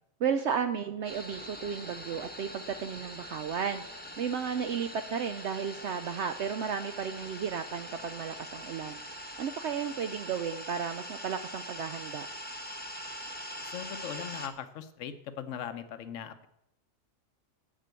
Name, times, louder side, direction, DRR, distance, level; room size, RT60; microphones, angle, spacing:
voice 1, 0.2-9.0 9.4-12.3, right 7 dB, 65° right, 8 dB, 0.8 m, -34 dB
sound 1, 1.0-14.5, equal, 10° left, 0.9 m, -43 dB
voice 2, 13.6-16.5, left 8 dB, 70° left, 11 dB, 1.1 m, -40 dB
7.5 x 7.4 x 8.2 m, 0.81 s
omnidirectional pair, 1.4 m